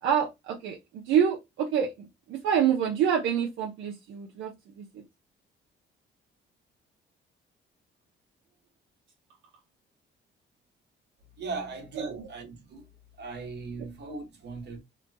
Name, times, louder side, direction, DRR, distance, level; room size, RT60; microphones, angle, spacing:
voice 1, 0.0-5.0 12.0-12.3, right 8 dB, 80° right, 0.6 m, -27 dB
voice 2, 11.4-12.9 13.2-14.8, right 3 dB, 60° right, 1.1 m, -38 dB
2.9 x 2.2 x 2.6 m
cardioid pair, 90°, 20 cm